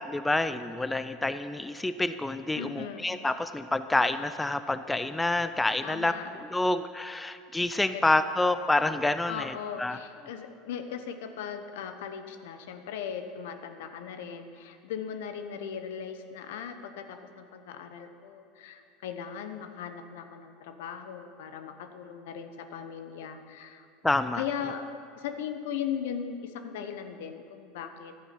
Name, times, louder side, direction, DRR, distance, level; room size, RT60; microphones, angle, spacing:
voice 1, 0.0-10.0 24.0-24.4, left 2 dB, 10° left, 11 dB, 0.4 m, -28 dB
voice 2, 2.5-3.1 5.8-6.3 7.9-8.0 9.3-23.9 24.3-24.8 25.2-28.1, left 8 dB, 70° left, 8 dB, 1.0 m, -38 dB
12.0 x 9.2 x 5.8 m, 2.4 s
hypercardioid pair, 85°, 0 cm